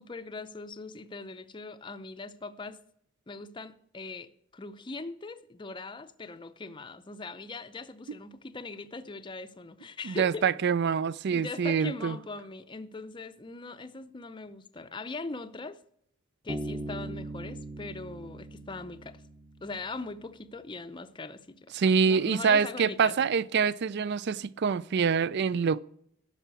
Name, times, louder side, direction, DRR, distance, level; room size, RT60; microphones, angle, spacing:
voice 1, 0.0-2.8 3.3-10.5 11.3-15.8 16.4-19.2 19.6-23.3, left 3 dB, 20° left, 0.6 m, -41 dB
voice 2, 10.0-12.2 21.7-25.8, right 6 dB, 50° right, 0.4 m, -25 dB
Bass guitar, 16.5-19.9, right 1 dB, 15° right, 0.8 m, -40 dB
12.0 x 5.6 x 8.2 m
head